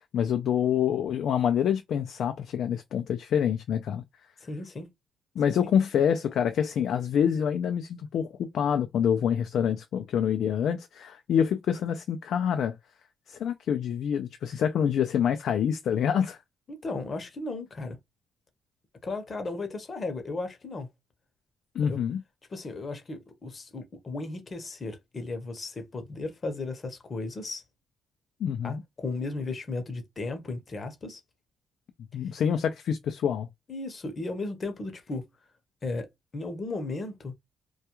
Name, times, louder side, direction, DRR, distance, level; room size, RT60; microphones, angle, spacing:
voice 1, 0.0-4.0 5.4-12.8 13.3-16.4 21.7-22.2 28.4-28.8 32.1-33.5, left 8 dB, 70° left, 0.3 m, -26 dB
voice 2, 4.4-4.9 5.5-5.7 16.7-18.0 19.0-20.9 21.8-22.0 22.5-27.6 28.6-31.2 33.7-35.2 35.8-36.1 36.3-37.3, left 3 dB, 40° left, 0.7 m, -35 dB
2.3 x 2.2 x 2.9 m
cardioid pair, 90°, 0 cm